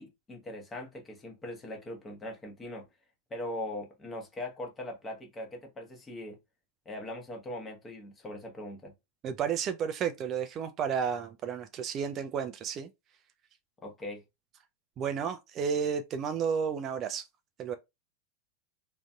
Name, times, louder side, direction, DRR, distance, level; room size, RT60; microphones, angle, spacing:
voice 1, 0.0-2.9 3.3-6.4 6.9-8.9 13.8-14.2, left 1 dB, 15° left, 0.9 m, -40 dB
voice 2, 9.2-12.9 15.0-17.2 17.6-17.8, right 7 dB, 30° right, 0.3 m, -32 dB
3.7 x 2.5 x 2.3 m
figure-of-eight pair, 90°, 0 cm